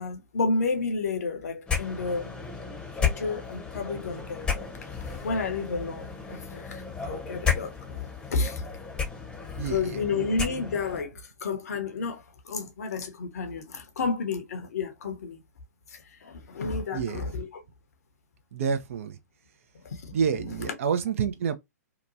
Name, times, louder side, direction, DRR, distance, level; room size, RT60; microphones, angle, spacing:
voice 1, 0.0-2.4 3.0-8.7 9.6-15.4 15.9-17.6 19.8-20.2 20.7-20.8, left 4 dB, 60° left, 0.8 m, -31 dB
sound 1, 1.7-11.0, left 6 dB, 10° left, 0.8 m, -33 dB
voice 2, 9.5-10.3 16.9-17.3 18.5-19.2 20.1-21.6, right 7 dB, 50° right, 0.5 m, -29 dB
2.9 x 2.2 x 2.5 m
figure-of-eight pair, 120°, 9 cm